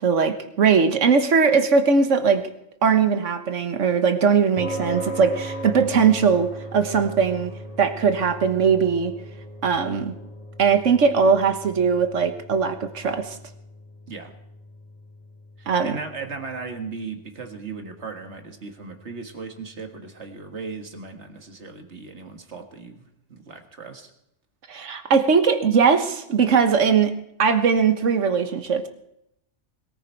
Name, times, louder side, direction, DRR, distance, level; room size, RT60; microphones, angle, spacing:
voice 1, 0.0-2.4 2.8-7.5 7.8-9.1 9.6-10.1 10.6-13.4 15.7-16.0 24.7-27.1 27.4-28.9, right 6 dB, 85° right, 8 dB, 1.5 m, -20 dB
sound 1, 4.6-21.1, right 1 dB, 30° left, 4.9 m, -39 dB
voice 2, 15.6-24.1, right 4 dB, 70° right, 5 dB, 2.0 m, -37 dB
21.5 x 14.0 x 4.5 m, 0.80 s
omnidirectional pair, 1.2 m